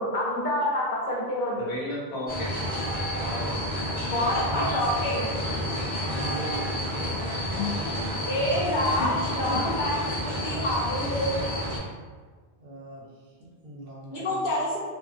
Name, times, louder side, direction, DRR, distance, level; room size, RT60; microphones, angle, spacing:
voice 1, 0.0-1.7 4.0-5.3 8.3-11.5 14.1-14.8, left 1 dB, 55° left, -5 dB, 0.7 m, -27 dB
voice 2, 1.5-2.7 3.2-3.6 7.5-7.8 8.8-9.1 9.5-9.7, left 2 dB, 80° left, -4 dB, 0.9 m, -33 dB
sound 1, 2.3-11.8, equal, 15° left, 0.4 m, -30 dB
voice 3, 4.0-4.7 6.1-7.3 12.6-14.5, right 1 dB, 65° right, -4 dB, 0.8 m, -41 dB
2.4 x 2.1 x 2.4 m, 1.4 s
omnidirectional pair, 1.0 m